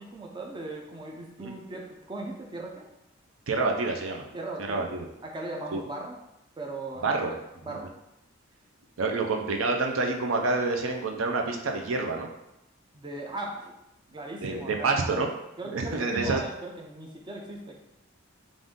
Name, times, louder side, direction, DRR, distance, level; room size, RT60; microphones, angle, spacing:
voice 1, 0.0-2.9 4.3-4.9 5.2-6.2 6.6-8.0 12.9-13.7 14.1-15.2 15.6-17.8, right 2 dB, 20° right, 0 dB, 0.4 m, -38 dB
voice 2, 3.5-4.3 4.7-5.1 5.7-5.8 7.0-7.3 7.7-7.8 9.0-12.3 14.4-15.3 15.7-16.4, right 3 dB, 75° right, 3 dB, 0.5 m, -27 dB
3.8 x 2.5 x 3.6 m, 0.88 s
head